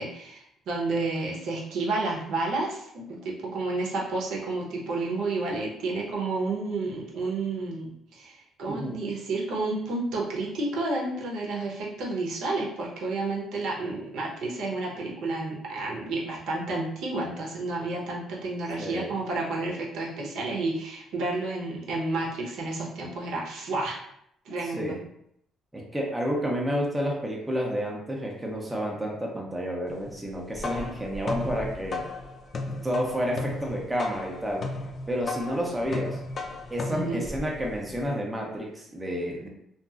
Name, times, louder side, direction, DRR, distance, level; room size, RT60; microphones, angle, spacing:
voice 1, 0.0-24.0 24.4-25.0 36.9-37.2, right 2 dB, 80° right, -2 dB, 0.8 m, -31 dB
voice 2, 8.7-9.0 18.8-19.1 24.7-25.0 25.7-32.1 32.6-34.7 35.1-36.2 36.7-39.5, equal, 10° right, -2 dB, 0.6 m, -30 dB
sound 1, 30.3-38.0, left 3 dB, 40° left, 0.4 m, -35 dB
2.8 x 2.5 x 2.4 m, 0.74 s
cardioid pair, 125°, 0 cm